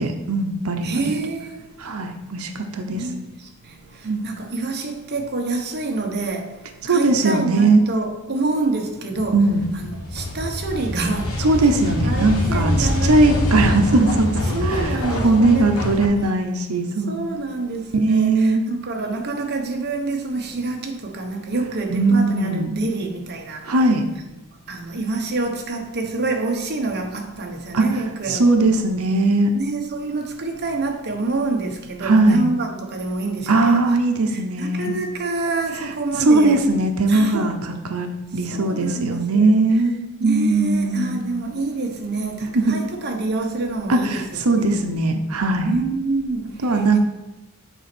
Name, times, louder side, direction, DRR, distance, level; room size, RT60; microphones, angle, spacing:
voice 1, 0.0-1.1 1.8-3.0 4.0-4.3 6.8-7.8 9.3-9.7 11.4-14.6 15.2-17.2 17.9-18.6 21.9-22.8 23.7-24.0 27.7-27.8 28.3-29.5 32.0-32.5 33.5-34.9 36.2-37.6 37.9-39.9 40.2-41.3 42.5-42.7 43.9-45.7 46.6-47.0, right 2 dB, 85° right, 0.9 m, -19 dB
voice 2, 0.8-1.6 2.9-3.2 4.2-6.5 6.9-9.5 9.7-11.4 12.0-13.4 14.5-15.9 16.2-16.4 17.1-23.8 24.2-24.3 24.7-28.7 29.5-33.9 34.3-36.6 37.1-37.5 38.5-39.6 40.2-44.8 45.6-47.0, right 3 dB, 50° right, 1.2 m, -27 dB
sound 1, 9.1-16.1, left 1 dB, 80° left, 1.5 m, -25 dB
8.2 x 4.2 x 6.1 m
head